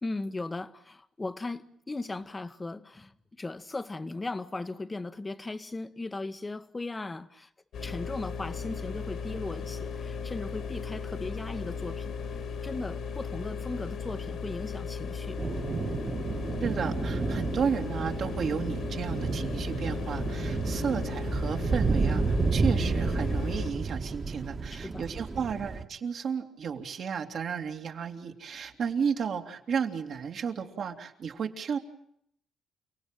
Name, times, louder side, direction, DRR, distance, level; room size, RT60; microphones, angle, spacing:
voice 1, 0.0-3.1 3.4-7.5 7.8-12.3 12.6-15.4 24.7-25.0, left 2 dB, 20° left, 1.3 m, -37 dB
sound 1, 7.7-23.7, left 5 dB, 70° left, 3.5 m, -36 dB
sound 2, 15.4-25.8, right 4 dB, 30° right, 2.0 m, -31 dB
voice 2, 16.6-31.8, right 6 dB, 60° right, 2.9 m, -33 dB
30.0 x 18.0 x 9.2 m
cardioid pair, 90°, 0 cm